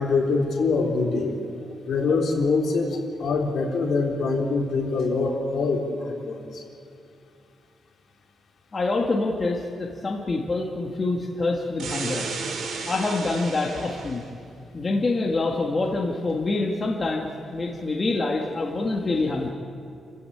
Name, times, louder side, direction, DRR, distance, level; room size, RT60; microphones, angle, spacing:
voice 1, 0.0-1.4 1.9-6.6, left 3 dB, 60° left, -1 dB, 3.8 m, -24 dB
voice 2, 8.7-12.3 12.9-14.2 14.7-19.5, left 3 dB, 25° left, -1 dB, 1.8 m, -26 dB
sound 1, 11.8-14.3, right 4 dB, 80° right, 3.4 m, -33 dB
29.5 x 15.5 x 8.6 m, 2.5 s
wide cardioid pair, 165°, 0 cm